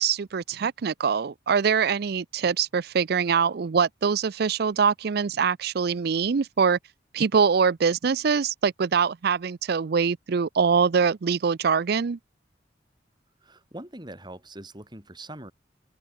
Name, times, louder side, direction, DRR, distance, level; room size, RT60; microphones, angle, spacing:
voice 1, 0.0-6.8 7.1-12.2, right 6 dB, 60° right, 0.5 m, -23 dB
voice 2, 13.4-15.5, right 1 dB, 25° right, 6.5 m, -42 dB
open air
head